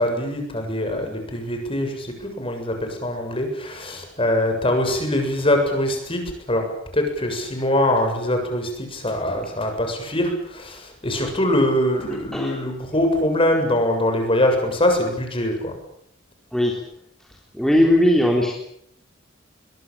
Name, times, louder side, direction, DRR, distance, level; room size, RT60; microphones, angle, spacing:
voice 1, 0.0-6.2 6.5-6.7 6.9-15.7, left 1 dB, 30° left, 4 dB, 7.3 m, -23 dB
voice 2, 16.5-16.8 17.5-18.5, left 1 dB, ahead, -1 dB, 3.8 m, -18 dB
23.0 x 22.0 x 8.9 m, 0.71 s
head